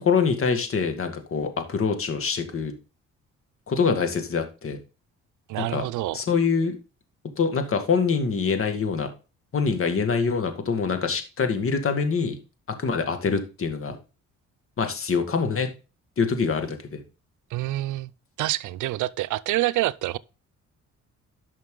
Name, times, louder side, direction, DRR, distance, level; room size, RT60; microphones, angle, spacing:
voice 1, 0.0-2.7 3.7-4.8 5.6-5.8 6.1-6.8 7.4-9.1 9.5-12.4 12.8-14.0 14.8-15.7 16.2-17.0, left 5 dB, 45° left, 2.0 m, -25 dB
voice 2, 5.5-6.2 17.5-18.1 18.4-20.2, right 16 dB, 85° right, 0.6 m, -27 dB
11.0 x 6.0 x 3.8 m
cardioid pair, 90°, 30 cm